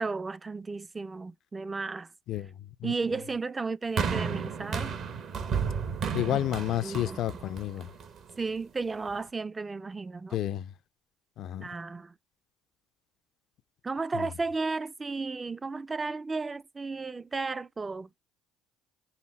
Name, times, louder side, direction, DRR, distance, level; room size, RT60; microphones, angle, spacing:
voice 1, 0.0-2.1 2.8-5.0 6.8-7.2 8.4-10.4 11.6-12.1 13.8-18.1, right 4 dB, 25° right, 0.3 m, -34 dB
sound 1, 4.0-8.3 9.1-9.2, right 6 dB, 55° right, 0.7 m, -32 dB
voice 2, 6.1-7.9 10.3-10.7 11.4-11.7 14.1-14.3, left 12 dB, 60° left, 0.3 m, -30 dB
5.6 x 2.0 x 3.4 m
hypercardioid pair, 70°, 0 cm